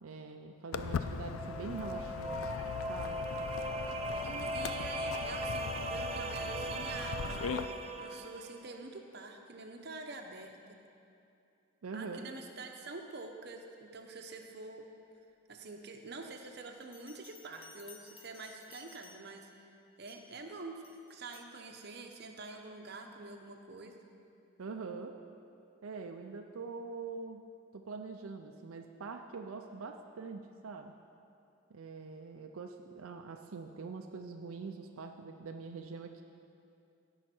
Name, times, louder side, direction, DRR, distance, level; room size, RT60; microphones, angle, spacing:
voice 1, 0.0-2.6 2.9-3.2 11.8-12.3 24.6-25.1 25.8-27.4 27.7-30.9 31.7-36.2, right 4 dB, 80° right, 4 dB, 0.5 m, -44 dB
Walk footsteps, 0.7-7.6, left 6 dB, 80° left, 0.4 m, -40 dB
sound 1, 0.9-8.6, right 1 dB, 30° right, 0.4 m, -39 dB
voice 2, 4.2-10.8 11.9-14.8 15.5-19.5 20.0-23.9, right 3 dB, 50° right, 3 dB, 0.8 m, -47 dB
Bell, 16.8-19.5 20.1-20.4 20.8-21.6, left 5 dB, 25° left, 0.6 m, -57 dB
16.0 x 5.8 x 4.4 m, 2.7 s
head